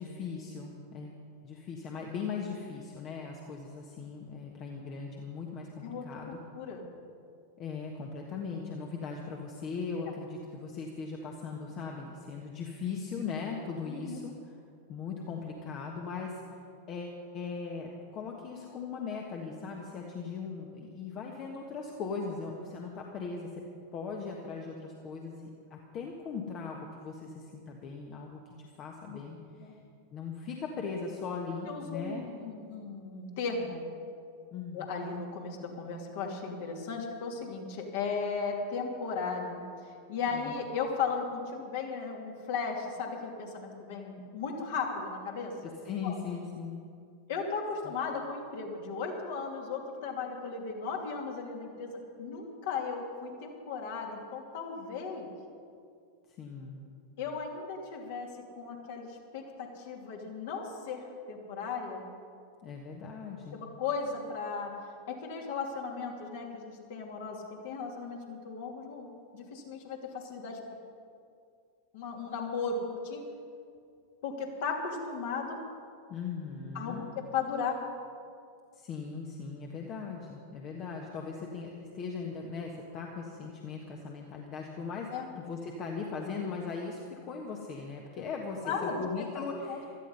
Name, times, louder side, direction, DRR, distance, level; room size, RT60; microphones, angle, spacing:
voice 1, 0.0-6.4 7.6-14.5 14.9-16.6 16.9-23.6 23.9-29.7 30.1-32.3 34.5-34.9 40.3-40.6 45.6-46.8 56.4-56.8 62.6-63.6 76.1-77.1 78.7-85.1 85.4-90.0, left 5 dB, 35° left, 0 dB, 1.5 m, -39 dB
voice 2, 6.5-6.9 10.0-10.1 13.9-14.2 29.6-29.8 31.7-33.8 34.7-45.5 46.0-46.2 47.3-55.3 57.2-62.1 63.5-64.7 65.1-70.6 71.9-73.2 74.2-75.6 76.7-77.8 85.1-85.3 88.2-88.3 88.6-89.0 89.7-89.8, left 5 dB, 55° left, 1 dB, 2.7 m, -36 dB
16.5 x 13.0 x 5.5 m, 2.4 s
figure-of-eight pair, 90°, 0 cm